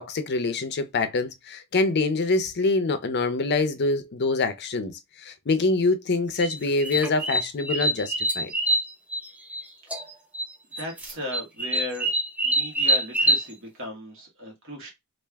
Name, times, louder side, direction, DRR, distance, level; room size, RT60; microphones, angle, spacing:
voice 1, 0.0-4.9 5.2-8.5, left 3 dB, 50° left, 0.5 m, -25 dB
sound 1, 6.3-9.6 9.9-10.5 10.7-13.5, right 1 dB, 5° right, 0.6 m, -25 dB
voice 2, 10.8-12.1 12.4-14.9, left 1 dB, 60° right, 1.6 m, -36 dB
3.4 x 2.4 x 3.4 m
head